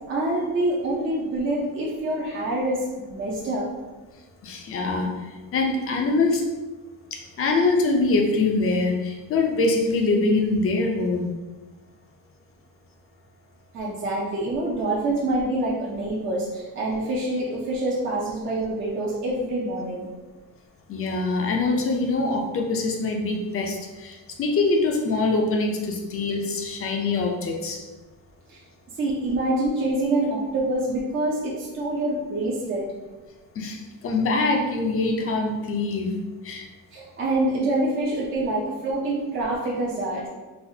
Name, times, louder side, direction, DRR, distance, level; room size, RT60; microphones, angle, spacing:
voice 1, 0.1-3.7 13.7-20.1 28.5-28.6 28.9-32.9 36.9-40.2, right 1 dB, 35° right, -5 dB, 0.6 m, -26 dB
voice 2, 4.4-5.1 5.5-6.4 7.1-11.3 20.9-27.8 33.6-36.2 36.4-36.7, left 3 dB, 35° left, 2 dB, 0.5 m, -24 dB
4.1 x 2.4 x 2.7 m, 1.2 s
cardioid pair, 145°, 37 cm